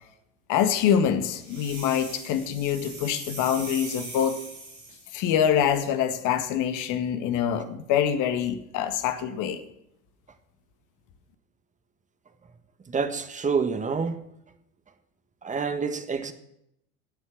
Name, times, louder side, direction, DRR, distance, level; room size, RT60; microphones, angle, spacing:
voice 1, 0.5-4.4 5.1-9.6, left 9 dB, 45° left, 1.7 m, -25 dB
sound 1, 1.4-5.1, right 2 dB, 80° right, 7.1 m, -40 dB
voice 2, 12.9-14.2 15.4-16.3, right 5 dB, 15° right, 1.5 m, -27 dB
17.5 x 8.0 x 6.1 m
figure-of-eight pair, 75°, 43 cm